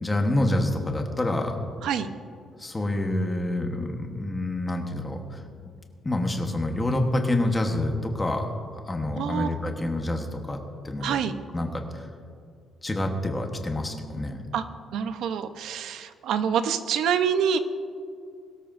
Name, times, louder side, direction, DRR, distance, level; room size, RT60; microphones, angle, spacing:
voice 1, 0.0-1.6 2.6-5.4 6.0-8.5 8.9-10.6 10.8-11.2 11.5-12.1 12.8-14.4, left 1 dB, 15° left, 3 dB, 1.2 m, -27 dB
voice 2, 9.2-9.5 11.0-11.3 14.5-14.6 14.9-17.6, right 8 dB, 75° right, 10 dB, 0.8 m, -26 dB
21.5 x 13.0 x 2.6 m, 2.3 s
cardioid pair, 175°, 0 cm